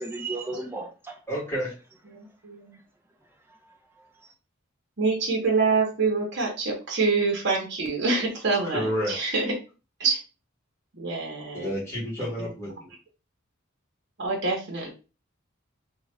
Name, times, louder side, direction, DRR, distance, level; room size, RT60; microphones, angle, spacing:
voice 1, 0.0-1.2 3.5-4.3, right 2 dB, 10° right, 1 dB, 0.6 m, -36 dB
voice 2, 1.3-1.7 8.7-9.2 11.5-12.7, equal, 15° left, -7 dB, 1.7 m, -29 dB
voice 3, 2.1-2.8 5.0-9.5 10.0-10.2 10.9-11.7 12.2-12.5 14.2-14.9, right 4 dB, 60° right, -2 dB, 1.0 m, -26 dB
2.9 x 2.4 x 3.2 m, 0.32 s
head